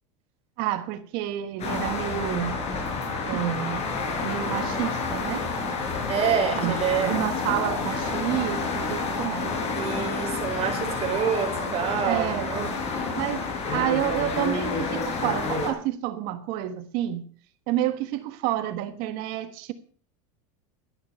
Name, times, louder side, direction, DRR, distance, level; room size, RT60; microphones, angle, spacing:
voice 1, 0.6-2.5 3.3-3.8 4.2-5.5 6.6-9.5 11.1-11.2 12.1-12.8 13.1-17.3 17.7-19.7, right 13 dB, 55° right, 1.3 m, -29 dB
sound 1, 1.6-15.7, left 4 dB, 35° left, 5.4 m, -29 dB
voice 2, 6.1-7.5 9.7-12.7, right 7 dB, 35° right, 4.5 m, -27 dB
12.5 x 11.0 x 5.6 m
supercardioid pair, 130°, 18 cm